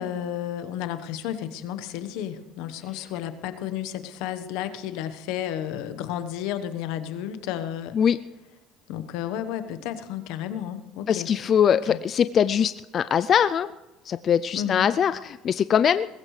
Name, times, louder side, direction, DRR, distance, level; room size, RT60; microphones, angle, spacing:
voice 1, 0.0-8.0 8.9-11.3 11.7-12.0 14.5-14.9, left 10 dB, 80° left, 10 dB, 1.1 m, -32 dB
voice 2, 11.1-13.7 14.1-16.1, left 8 dB, 40° left, 13 dB, 0.4 m, -22 dB
20.5 x 15.5 x 3.3 m, 1.1 s
cardioid pair, 120°, 0 cm